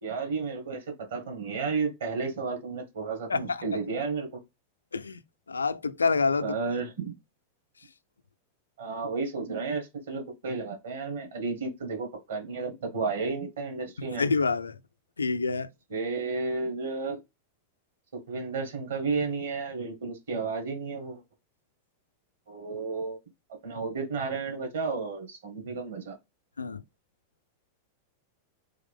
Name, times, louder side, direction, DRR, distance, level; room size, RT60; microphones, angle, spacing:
voice 1, 0.0-4.4 6.4-7.1 8.8-14.3 15.9-17.2 18.1-21.2 22.5-23.2 23.6-26.2, right 4 dB, 65° right, 1.7 m, -32 dB
voice 2, 3.3-3.8 4.9-5.2 5.5-6.6 14.2-14.8 15.2-15.7 26.6-26.8, left 4 dB, 75° left, 0.3 m, -27 dB
3.7 x 3.0 x 3.6 m
figure-of-eight pair, 90°, 0 cm